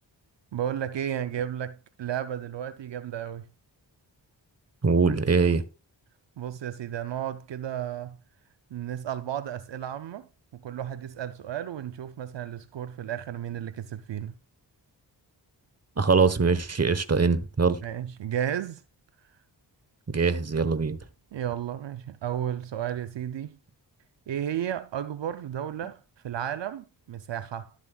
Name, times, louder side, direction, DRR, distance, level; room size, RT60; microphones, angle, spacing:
voice 1, 0.5-3.5 6.4-8.2 8.7-14.3 17.8-18.8 21.3-23.6 24.3-27.7, right 10 dB, 75° right, 0.6 m, -33 dB
voice 2, 4.8-5.6 16.0-17.8 20.1-21.0, right 5 dB, 35° right, 1.1 m, -22 dB
12.0 x 7.3 x 2.3 m
cardioid pair, 50°, 44 cm